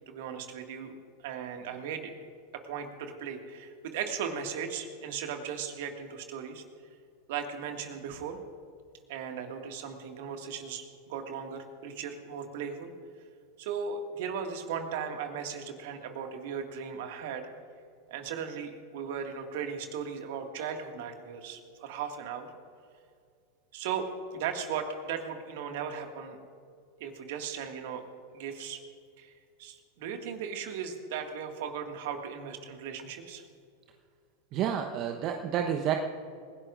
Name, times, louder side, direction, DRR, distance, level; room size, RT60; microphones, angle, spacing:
voice 1, 0.1-0.9 1.2-2.1 2.5-6.6 7.3-8.4 9.1-12.9 13.6-17.5 18.1-22.5 23.7-26.4 27.0-28.0 28.3-28.8 29.2-29.3 29.6-33.5, right 7 dB, 60° right, 4 dB, 2.0 m, -37 dB
voice 2, 34.5-36.0, right 9 dB, 45° right, 4 dB, 1.0 m, -29 dB
28.5 x 17.0 x 2.6 m, 2.3 s
figure-of-eight pair, 85°, 0 cm